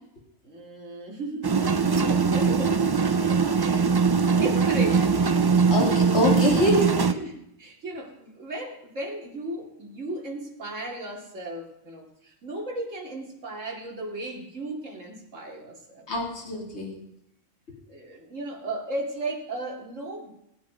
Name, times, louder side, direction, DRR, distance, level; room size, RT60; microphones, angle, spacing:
voice 1, 0.4-2.9 3.2-3.9 4.4-5.4 7.1-16.1 17.9-20.3, right 2 dB, 65° right, 0 dB, 3.0 m, -35 dB
sound 1, 1.4-7.1, right 5 dB, 35° right, 0.4 m, -21 dB
voice 2, 5.7-6.9 16.1-17.0, left 1 dB, 55° left, -2 dB, 3.1 m, -24 dB
19.0 x 9.6 x 5.0 m, 0.83 s
omnidirectional pair, 1.4 m